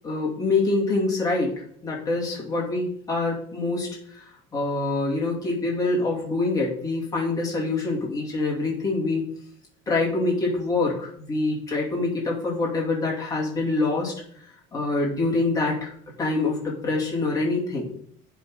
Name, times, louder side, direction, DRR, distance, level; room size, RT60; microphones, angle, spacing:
voice 1, 0.0-1.5 1.8-4.2 4.5-9.2 9.9-14.1 14.7-15.9 16.2-17.9, left 3 dB, 15° left, -4 dB, 2.6 m, -25 dB
10.0 x 3.9 x 4.8 m, 0.62 s
cardioid pair, 170°, 20 cm